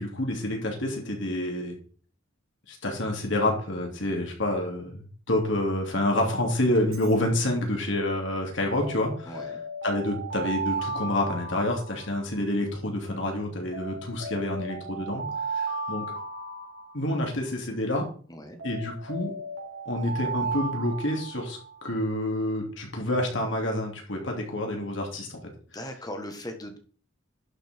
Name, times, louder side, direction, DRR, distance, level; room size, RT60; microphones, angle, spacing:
voice 1, 0.0-1.8 2.7-9.3 9.8-15.3 15.5-16.0 16.9-18.1 18.6-19.3 19.8-25.4, left 1 dB, 65° left, 1 dB, 3.0 m, -28 dB
Alarm, 6.7-7.1 8.8-12.6 13.7-17.5 18.6-21.8, right 3 dB, 80° right, 4.0 m, -35 dB
voice 2, 9.2-9.6 18.3-18.6 25.7-26.8, left 1 dB, 20° left, 6 dB, 1.6 m, -38 dB
11.5 x 5.9 x 4.6 m, 0.41 s
head